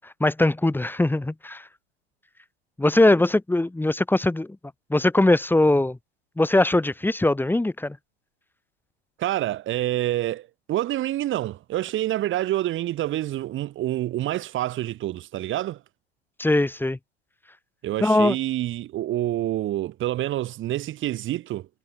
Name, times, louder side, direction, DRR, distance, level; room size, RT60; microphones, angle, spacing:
voice 1, 0.0-1.7 2.8-4.5 4.9-6.0 6.4-8.0 16.4-17.0 18.0-18.4, left 2 dB, 5° left, 4.9 m, -21 dB
voice 2, 9.2-15.8 17.8-21.7, right 14 dB, 35° right, 4.4 m, -27 dB
figure-of-eight pair, 85°, 33 cm